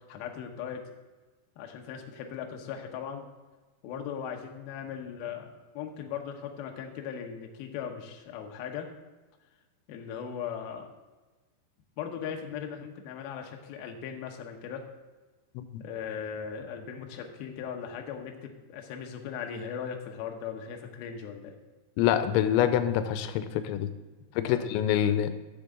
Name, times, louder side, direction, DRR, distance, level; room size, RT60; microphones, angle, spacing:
voice 1, 0.1-0.8 1.6-3.3 3.8-8.9 9.9-10.9 12.0-14.8 15.8-21.5 24.5-24.7, left 7 dB, 70° left, 3 dB, 2.6 m, -38 dB
voice 2, 22.0-23.9 24.4-25.3, left 10 dB, 90° left, 10 dB, 2.9 m, -26 dB
13.5 x 7.0 x 3.8 m, 1.3 s
omnidirectional pair, 5.1 m